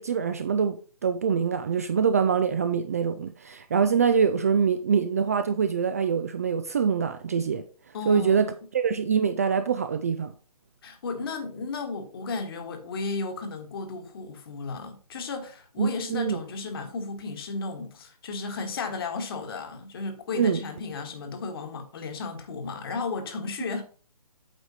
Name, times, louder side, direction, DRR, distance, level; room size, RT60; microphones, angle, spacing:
voice 1, 0.0-7.6 8.1-8.5 8.7-10.3 15.8-16.4 20.4-20.6, right 6 dB, 25° right, 0.4 m, -24 dB
voice 2, 7.9-8.5 10.8-23.8, left 4 dB, 40° left, 1.5 m, -34 dB
8.2 x 4.9 x 4.2 m
figure-of-eight pair, 145°, 20 cm